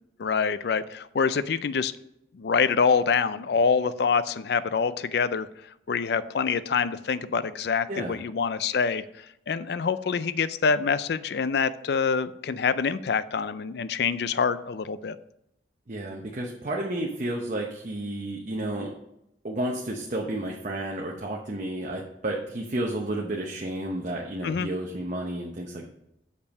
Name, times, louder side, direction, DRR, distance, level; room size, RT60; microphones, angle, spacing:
voice 1, 0.2-1.9 2.3-5.5 5.9-9.0 9.5-15.2 24.4-24.7, left 5 dB, 60° left, 15 dB, 0.4 m, -25 dB
voice 2, 15.9-18.9 19.4-25.9, right 1 dB, 40° right, 0 dB, 0.8 m, -31 dB
6.8 x 5.5 x 5.3 m, 0.81 s
head